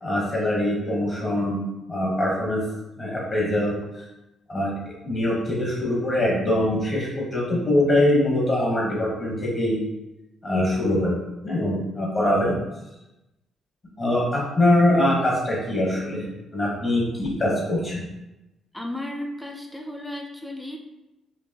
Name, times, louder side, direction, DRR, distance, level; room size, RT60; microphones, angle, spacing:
voice 1, 0.0-1.6 1.9-2.6 3.0-4.1 4.5-4.7 5.0-9.8 10.4-11.2 11.4-12.6 14.0-18.0, left 1 dB, 40° left, -4 dB, 1.1 m, -23 dB
voice 2, 18.7-20.8, left 1 dB, 5° left, 2 dB, 0.5 m, -34 dB
4.4 x 2.8 x 2.8 m, 0.97 s
cardioid pair, 90°, 0 cm